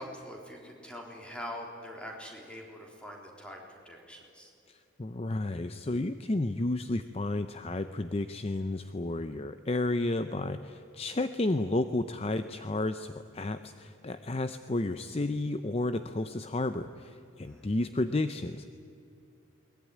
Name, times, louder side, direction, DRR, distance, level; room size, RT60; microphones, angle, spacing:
voice 1, 0.0-4.5 17.4-17.7, equal, 5° left, 0 dB, 3.7 m, -44 dB
voice 2, 4.7-18.7, left 2 dB, 30° left, 10 dB, 0.6 m, -32 dB
22.0 x 20.5 x 9.7 m, 2.7 s
head